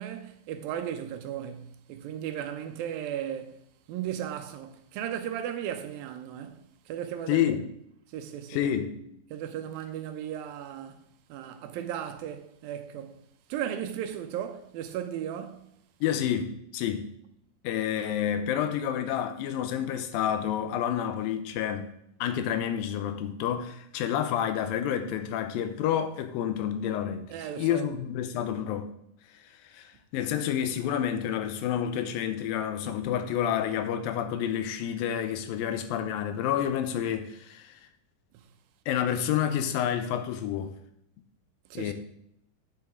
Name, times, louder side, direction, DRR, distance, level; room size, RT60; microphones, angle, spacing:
voice 1, 0.0-3.6 3.9-7.6 8.1-8.7 9.3-11.0 11.3-13.2 13.5-15.7 27.3-27.9 41.7-41.9, right 10 dB, 85° right, 2.6 m, -36 dB
voice 2, 7.3-7.7 8.5-8.9 16.0-17.1 17.6-21.9 22.2-27.3 27.6-28.9 29.7-37.8 38.9-40.8 41.8-41.9, left 9 dB, 85° left, 2.5 m, -29 dB
9.6 x 7.7 x 3.7 m
omnidirectional pair, 4.1 m